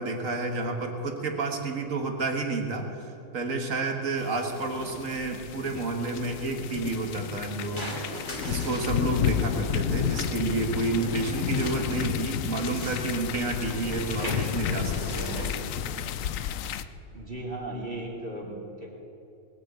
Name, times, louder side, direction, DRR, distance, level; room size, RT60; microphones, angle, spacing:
voice 1, 0.0-3.1 3.3-7.9 8.4-15.5, right 3 dB, 75° right, 3 dB, 2.0 m, -30 dB
sound 1, 4.3-16.8, left 10 dB, 75° left, 1.0 m, -31 dB
sound 2, 6.9-16.0, left 1 dB, 20° left, 2.8 m, -39 dB
voice 2, 17.1-18.9, right 1 dB, 40° right, -2 dB, 2.5 m, -36 dB
20.5 x 8.5 x 8.2 m, 2.9 s
omnidirectional pair, 1.4 m